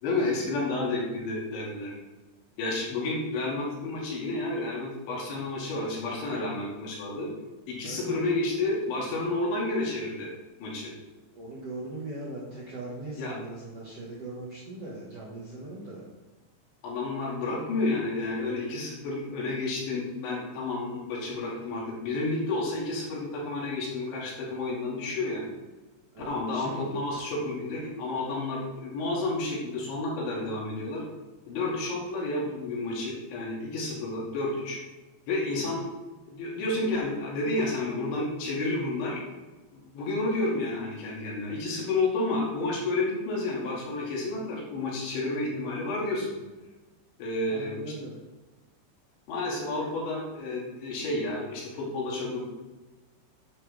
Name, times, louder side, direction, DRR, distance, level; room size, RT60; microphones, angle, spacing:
voice 1, 0.0-1.9 2.6-7.3 7.7-10.3 10.6-10.9 13.2-13.3 16.8-25.5 26.3-31.0 31.5-34.8 35.3-35.8 36.3-39.2 39.7-46.3 47.2-47.9 49.3-52.4, left 2 dB, 75° left, -4 dB, 4.6 m, -30 dB
voice 2, 7.8-8.1 11.3-16.0 26.1-27.0 47.5-48.2, right 2 dB, 55° right, -6 dB, 1.7 m, -40 dB
10.0 x 9.0 x 3.5 m, 1.2 s
omnidirectional pair, 5.4 m